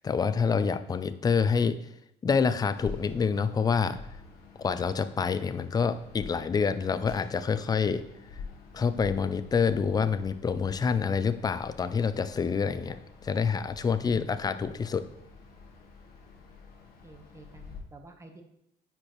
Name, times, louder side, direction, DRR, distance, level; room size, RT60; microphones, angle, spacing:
voice 1, 0.0-1.8 2.2-4.0 4.6-8.0 8.7-15.1, left 5 dB, 25° left, 12 dB, 0.4 m, -27 dB
sound 1, 2.8-17.8, left 5 dB, 65° left, 1.2 m, -48 dB
voice 2, 17.0-18.4, right 2 dB, 15° right, 4 dB, 1.1 m, -52 dB
9.8 x 4.4 x 3.1 m, 0.79 s
cardioid pair, 110°, 17 cm